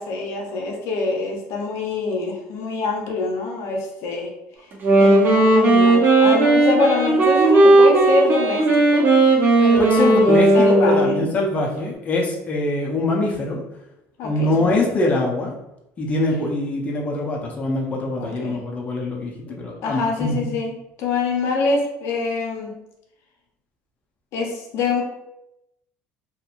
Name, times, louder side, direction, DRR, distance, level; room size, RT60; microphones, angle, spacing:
voice 1, 0.0-4.3 5.0-9.1 9.6-11.1 14.2-14.9 18.2-18.6 19.5-22.7 24.3-25.0, left 3 dB, 65° left, 1 dB, 0.6 m, -25 dB
Wind instrument woodwind instrument, 4.7-11.2, right 2 dB, 40° right, 0.9 m, -15 dB
voice 2, 9.8-13.6 14.2-15.5 16.0-20.5, left 2 dB, 25° left, -1 dB, 0.6 m, -23 dB
2.8 x 2.6 x 2.4 m, 0.86 s
cardioid pair, 115°, 5 cm